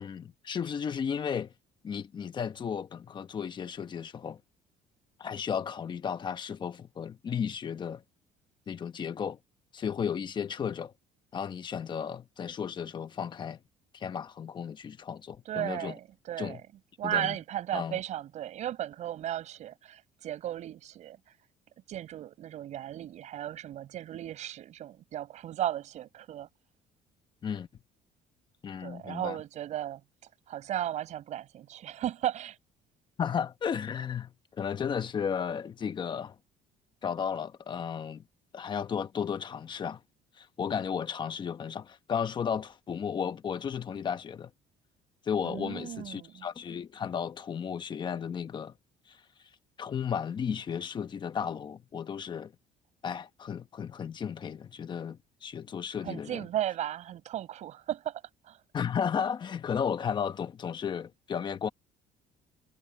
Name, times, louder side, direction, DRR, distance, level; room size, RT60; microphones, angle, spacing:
voice 1, 0.0-1.5 1.8-4.4 5.2-8.0 8.7-9.4 9.7-10.9 11.3-13.6 13.9-15.9 16.4-16.6 17.0-17.4 17.7-18.0 27.4-27.7 28.6-29.4 33.2-36.4 37.0-38.2 38.5-40.0 40.4-44.5 45.2-48.7 49.1-49.2 49.8-52.5 53.0-56.5 58.7-61.7, left 7 dB, 35° left, 1.1 m, -34 dB
voice 2, 15.5-16.6 17.0-21.3 21.9-26.5 28.8-30.0 30.5-32.6 45.4-46.5 56.0-58.6, right 12 dB, 55° right, 5.4 m, -35 dB
cardioid pair, 130°, 14 cm